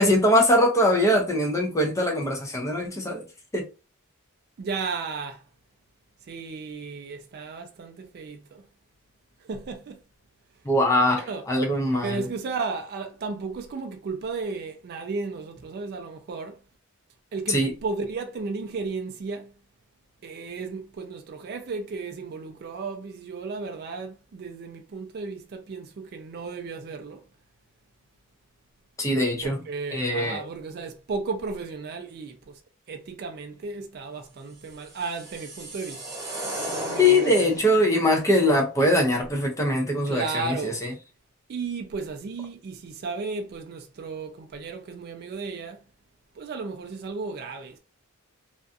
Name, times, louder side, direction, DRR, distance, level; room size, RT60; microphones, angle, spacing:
voice 1, 0.0-3.2 3.5-3.6 10.7-12.2 17.5-17.7 29.0-29.6 29.9-30.4 37.0-40.7, left 1 dB, 15° left, 0.6 m, -22 dB
voice 2, 4.6-5.4 6.2-8.7 9.4-10.0 11.3-11.4 12.0-16.6 17.3-19.5 20.2-27.2 29.4-32.6 32.9-36.2 36.7-38.0 40.1-40.9 41.5-45.8 46.4-47.8, right 4 dB, 45° right, 0.3 m, -34 dB
sound 1, 34.6-37.8, right 1 dB, 15° right, 1.1 m, -35 dB
2.5 x 2.3 x 2.5 m
head